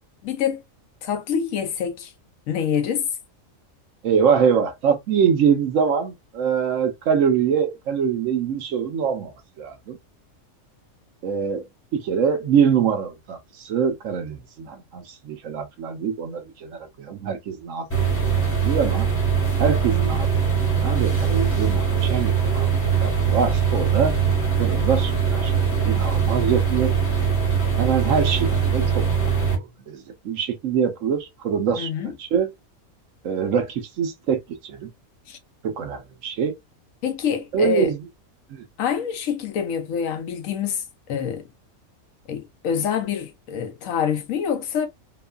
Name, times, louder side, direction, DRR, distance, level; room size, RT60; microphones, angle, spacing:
voice 1, 0.2-0.6 1.0-2.1 2.5-3.0 31.8-32.1 35.3-35.4 37.0-37.9 38.8-40.8 41.1-41.5 42.3-44.9, left 8 dB, 70° left, 1.0 m, -26 dB
voice 2, 4.0-10.0 11.2-11.7 11.9-19.1 19.6-20.3 20.6-22.7 23.0-24.1 24.6-25.5 25.8-26.9 27.8-29.0 29.5-31.9 32.2-32.5 33.2-34.9 35.6-36.6 37.5-38.0 38.5-38.6, right 7 dB, 70° right, 1.0 m, -24 dB
sound 1, 17.9-29.5, right 6 dB, 10° left, 1.0 m, -21 dB
3.0 x 2.2 x 2.2 m
omnidirectional pair, 1.5 m